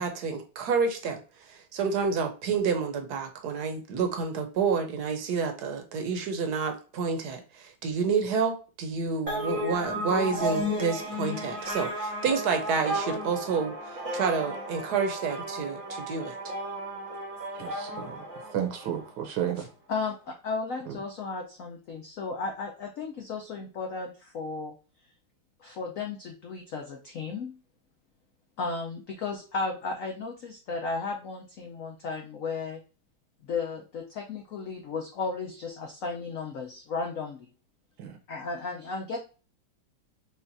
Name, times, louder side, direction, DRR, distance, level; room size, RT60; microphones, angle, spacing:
voice 1, 0.0-16.4, right 5 dB, 65° right, 1.1 m, -29 dB
sound 1, 9.3-19.0, equal, 30° right, 0.6 m, -33 dB
voice 2, 17.5-18.2 18.5-19.7 20.9-21.0 38.0-38.1, right 10 dB, 80° right, 1.5 m, -32 dB
voice 3, 19.6-24.7 25.6-27.6 28.6-32.8 33.5-37.5 38.3-39.2, left 4 dB, 85° left, 0.7 m, -34 dB
5.4 x 2.5 x 2.6 m
omnidirectional pair, 2.2 m